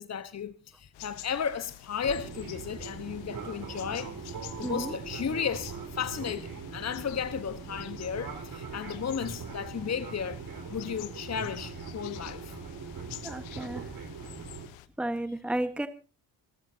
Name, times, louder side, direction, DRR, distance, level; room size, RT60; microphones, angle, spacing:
voice 1, 0.0-10.4 10.7-12.6, left 7 dB, 35° left, 1.2 m, -34 dB
sound 1, 0.9-14.9, left 15 dB, 90° left, 1.2 m, -49 dB
Fixed-wing aircraft airplane, 2.0-14.7, right 5 dB, 50° right, 4.8 m, -41 dB
voice 2, 4.6-4.9 13.2-13.8 15.0-15.9, right 1 dB, ahead, 1.3 m, -32 dB
27.0 x 13.5 x 2.8 m
supercardioid pair, 65°, 44 cm